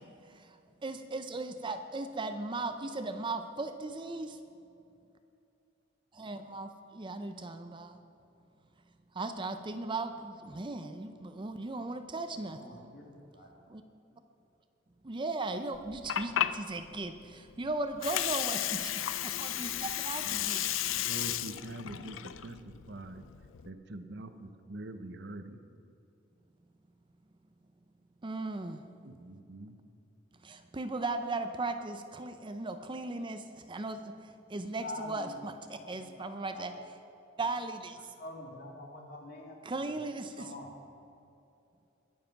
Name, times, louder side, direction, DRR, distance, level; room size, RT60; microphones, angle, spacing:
voice 1, 0.0-4.4 6.1-8.0 9.1-12.8 13.7-13.8 15.0-20.7 28.2-28.8 30.4-36.7 37.4-38.1 39.6-40.5, right 2 dB, 25° right, 8 dB, 0.5 m, -37 dB
voice 2, 12.5-13.1 13.3-13.5 34.8-35.5 35.8-36.8 38.2-40.0 40.4-40.7, left 1 dB, 55° left, 0 dB, 2.4 m, -45 dB
Water, 15.7-23.7, left 12 dB, 80° left, 0.5 m, -34 dB
voice 3, 20.9-23.2 23.6-25.6 29.0-29.8, right 1 dB, 60° right, 9 dB, 0.9 m, -44 dB
21.5 x 7.5 x 5.9 m, 2.7 s
head